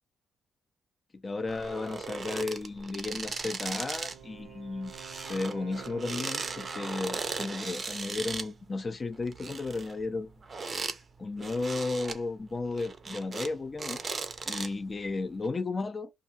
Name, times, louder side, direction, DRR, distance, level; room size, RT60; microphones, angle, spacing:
voice 1, 1.1-4.9 5.2-10.3 11.2-14.0 14.5-16.1, left 3 dB, 30° left, 0.3 m, -34 dB
sound 1, 1.5-4.2 4.5-8.5 9.1-11.0 11.4-12.2 12.6-13.5 13.8-14.9 15.4-15.5, right 4 dB, 35° right, 0.5 m, -37 dB
Wind instrument woodwind instrument, 3.7-7.5, right 10 dB, 85° right, 0.5 m, -49 dB
2.7 x 2.3 x 2.6 m
cardioid pair, 90°, 0 cm